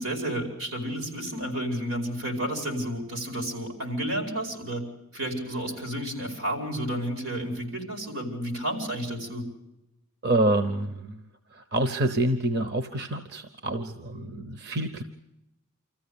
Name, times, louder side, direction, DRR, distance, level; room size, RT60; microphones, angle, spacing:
voice 1, 0.0-4.8 5.1-9.4, right 1 dB, 90° right, 4 dB, 5.0 m, -31 dB
voice 2, 10.2-11.2 11.5-15.0, right 1 dB, 50° right, 8 dB, 0.9 m, -27 dB
26.0 x 14.5 x 8.7 m, 0.91 s
head